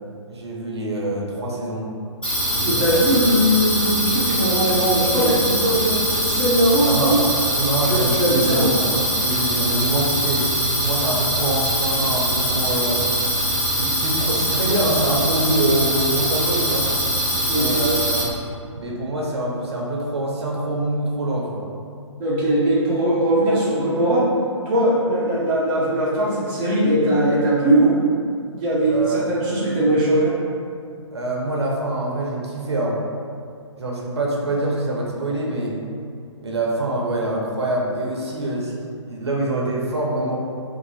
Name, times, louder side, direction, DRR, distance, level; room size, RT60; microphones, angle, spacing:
voice 1, 0.3-1.9 2.6-2.8 6.8-10.5 10.8-13.0 13.7-16.9 17.5-18.2 18.7-21.6 28.9-29.2 31.1-33.0 33.8-35.8 36.4-38.7 39.0-40.4, right 1 dB, 60° right, -3 dB, 0.7 m, -25 dB
sound 1, 2.2-18.2, equal, 5° left, 0.8 m, -22 dB
voice 2, 2.6-7.2 7.9-8.7 17.5-17.9 22.2-24.3 24.7-28.1 28.5-30.3, right 1 dB, 20° right, -8 dB, 0.6 m, -20 dB
2.7 x 2.5 x 4.0 m, 2.3 s
figure-of-eight pair, 130°, 16 cm